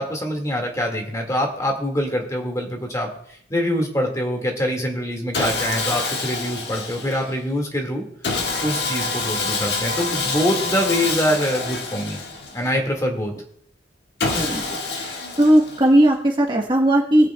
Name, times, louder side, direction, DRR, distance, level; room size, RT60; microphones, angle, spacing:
voice 1, 0.0-3.1 3.5-8.0 8.6-12.2 12.5-13.3, equal, 20° left, 2 dB, 1.9 m, -24 dB
Sawing, 5.3-7.4 8.2-12.8 14.2-16.0, left 3 dB, 65° left, 1.6 m, -27 dB
voice 2, 14.3-14.7 14.9-17.3, right 1 dB, 25° right, 0 dB, 1.1 m, -17 dB
21.0 x 8.4 x 2.3 m, 0.65 s
head